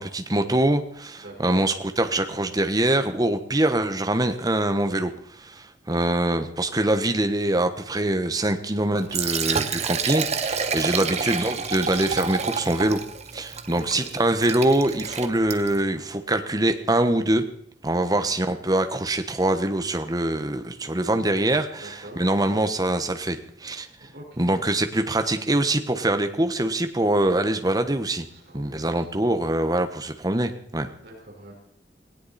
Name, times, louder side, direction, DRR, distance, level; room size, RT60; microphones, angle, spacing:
voice 1, 0.0-5.1 5.4-13.0 13.3-17.4 17.8-23.9 24.4-28.3 28.5-30.9, right 1 dB, 20° right, 8 dB, 1.3 m, -24 dB
voice 2, 1.2-1.6 5.9-6.0 10.7-11.1 13.7-14.1 20.8-21.1 21.7-22.2 24.0-24.4 28.2-29.1 31.0-31.5, right 1 dB, 65° right, -3 dB, 5.2 m, -44 dB
Liquid, 9.0-15.8, right 5 dB, 40° right, 1.1 m, -29 dB
18.5 x 18.0 x 4.3 m, 0.66 s
head